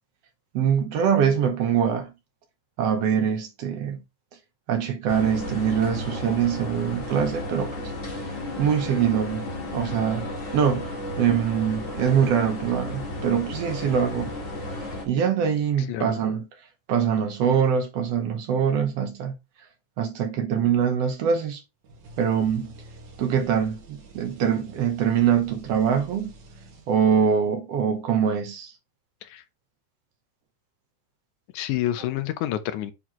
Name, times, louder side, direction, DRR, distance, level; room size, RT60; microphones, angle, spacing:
voice 1, 0.5-2.1 2.8-4.0 4.7-7.9 8.6-14.3 14.8-16.4 16.9-19.3 20.0-21.6 22.2-22.7 23.2-26.3 26.9-28.7, right 7 dB, 65° right, 1.7 m, -24 dB
sound 1, 5.1-15.0, left 1 dB, 30° left, 1.9 m, -33 dB
sound 2, 21.8-27.3, right 1 dB, 90° right, 3.3 m, -47 dB
voice 2, 31.5-32.9, left 13 dB, 90° left, 2.2 m, -28 dB
8.8 x 4.2 x 3.0 m
omnidirectional pair, 3.4 m